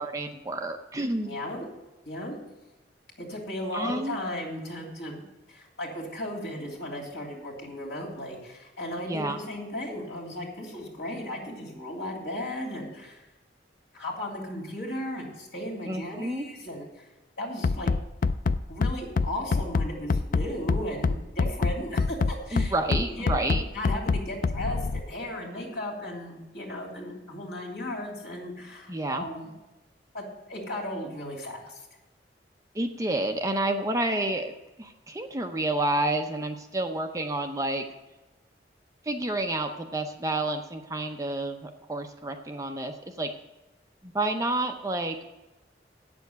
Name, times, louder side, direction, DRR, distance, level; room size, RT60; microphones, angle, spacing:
voice 1, 0.0-1.4 3.7-4.2 9.0-9.4 15.9-16.5 22.5-23.6 28.9-29.2 32.7-34.5 34.8-37.8 39.0-43.3 44.0-45.2, right 2 dB, 20° right, 5 dB, 0.7 m, -29 dB
voice 2, 1.2-1.7 2.0-2.4 3.2-13.2 13.9-17.0 17.4-17.9 18.7-29.5 30.1-31.8, left 1 dB, 65° left, -2 dB, 3.1 m, -36 dB
Bass drum, 17.6-25.0, left 4 dB, 50° left, 0.3 m, -25 dB
8.6 x 7.0 x 8.1 m, 1.0 s
head